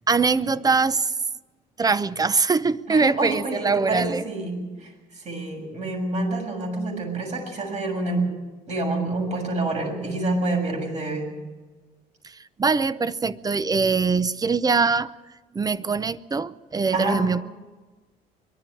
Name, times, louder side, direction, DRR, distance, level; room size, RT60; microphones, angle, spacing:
voice 1, 0.1-1.2 1.8-4.2 12.2-15.1 15.5-17.4, right 4 dB, 20° right, 0.7 m, -22 dB
voice 2, 2.9-8.3 8.7-11.2 16.9-17.2, right 2 dB, 45° right, 6.9 m, -27 dB
22.5 x 12.0 x 9.9 m
cardioid pair, 110°, 17 cm